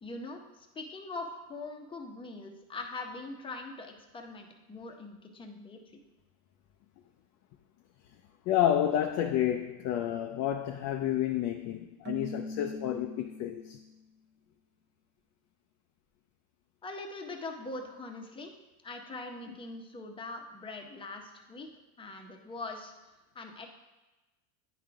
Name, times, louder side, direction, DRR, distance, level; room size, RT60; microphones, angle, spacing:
voice 1, 0.0-5.8 16.8-18.5 18.8-21.7 22.0-22.9 23.3-23.7, left 2 dB, 10° left, 2 dB, 0.7 m, -42 dB
voice 2, 8.5-13.8, left 11 dB, 40° left, 5 dB, 0.4 m, -30 dB
Keyboard (musical), 12.1-14.0, left 1 dB, 25° right, 0.5 m, -42 dB
10.0 x 3.8 x 4.7 m, 1.1 s
supercardioid pair, 130°, 44 cm